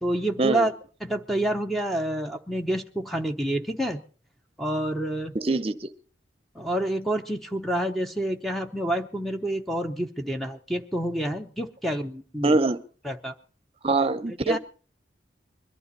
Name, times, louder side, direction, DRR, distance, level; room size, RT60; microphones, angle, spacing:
voice 1, 0.0-0.7 1.0-4.0 4.6-5.3 6.5-12.6 13.0-13.3 14.3-14.6, right 1 dB, ahead, 5 dB, 0.7 m, -28 dB
voice 2, 5.3-5.9 12.4-12.8 13.8-14.6, right 2 dB, 30° right, 13 dB, 0.8 m, -23 dB
21.5 x 12.5 x 4.1 m, 0.39 s
head